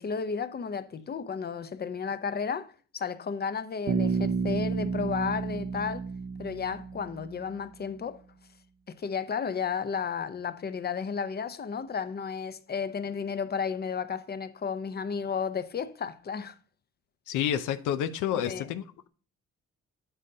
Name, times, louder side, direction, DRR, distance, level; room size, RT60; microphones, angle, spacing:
voice 1, 0.0-6.0 6.4-8.2 8.9-16.6 18.3-18.7, left 6 dB, 35° left, 0.6 m, -33 dB
Bass guitar, 3.9-7.6, right 5 dB, 45° right, 0.7 m, -31 dB
voice 2, 17.3-19.1, left 10 dB, 85° left, 0.6 m, -29 dB
9.0 x 6.4 x 2.7 m
cardioid pair, 90°, 30 cm